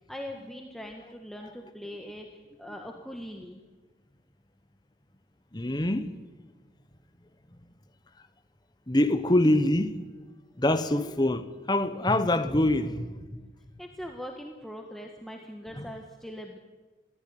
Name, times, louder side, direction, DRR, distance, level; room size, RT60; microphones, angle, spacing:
voice 1, 0.1-3.6 10.9-11.2 13.8-16.6, equal, ahead, 1.4 m, -41 dB
voice 2, 5.5-6.1 8.9-10.0 10.6-13.5 15.7-15.8, left 1 dB, 25° left, 1.2 m, -25 dB
21.5 x 15.0 x 9.4 m
head